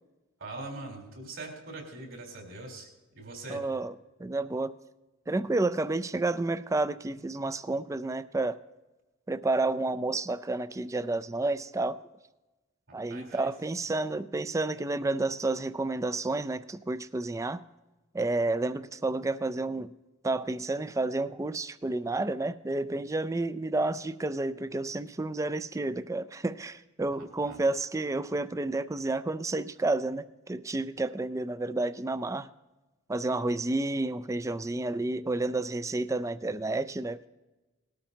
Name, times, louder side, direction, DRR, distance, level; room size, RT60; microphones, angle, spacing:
voice 1, 0.4-2.9 3.1-3.6 12.9-13.5 27.4-27.6, right 2 dB, 65° right, -1 dB, 3.7 m, -42 dB
voice 2, 3.5-3.9 4.2-4.7 5.3-8.6 9.3-12.0 12.9-17.6 18.1-19.9 20.2-32.5 33.1-37.3, right 2 dB, 15° right, 14 dB, 0.4 m, -30 dB
19.5 x 13.0 x 2.8 m, 1.1 s
head